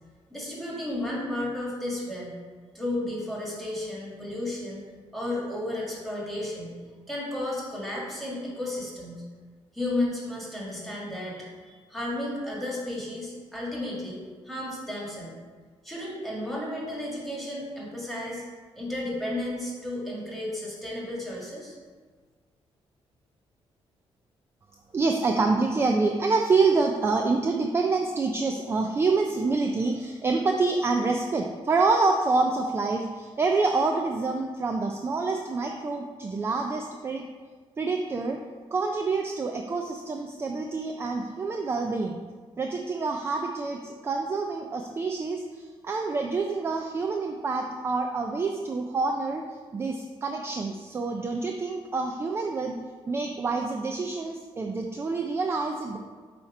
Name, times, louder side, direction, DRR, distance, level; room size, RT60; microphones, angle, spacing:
voice 1, 0.3-2.3 2.7-4.8 5.1-6.8 7.1-9.2 9.7-15.3 15.8-18.4 18.7-21.7, left 1 dB, ahead, -5 dB, 1.5 m, -33 dB
voice 2, 24.9-37.3 37.8-38.4 38.7-42.2 42.6-49.4 49.7-52.8 53.1-56.0, right 3 dB, 25° right, 3 dB, 0.3 m, -27 dB
7.5 x 2.9 x 4.8 m, 1.5 s
cardioid pair, 155°, 10 cm